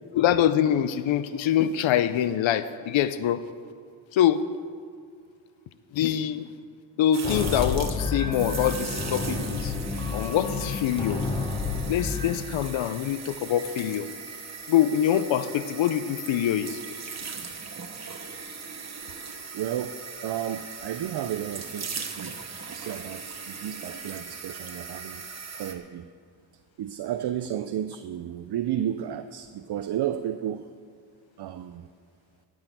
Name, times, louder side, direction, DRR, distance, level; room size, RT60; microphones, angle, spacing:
voice 1, 0.1-3.4 4.1-4.4 5.9-6.5 7.0-9.7 10.1-11.2 11.9-14.1 14.7-16.8, left 10 dB, 85° left, 13 dB, 0.6 m, -24 dB
sound 1, 7.1-25.7, right 5 dB, 35° right, 1.2 m, -39 dB
sound 2, 7.2-12.4, left 4 dB, 10° left, 1.0 m, -30 dB
voice 2, 19.5-22.4 22.6-25.2 25.6-26.1 26.8-30.6 31.4-31.9, right 10 dB, 60° right, 10 dB, 0.5 m, -32 dB
13.0 x 6.3 x 9.1 m, 2.2 s
wide cardioid pair, 135°, 45 cm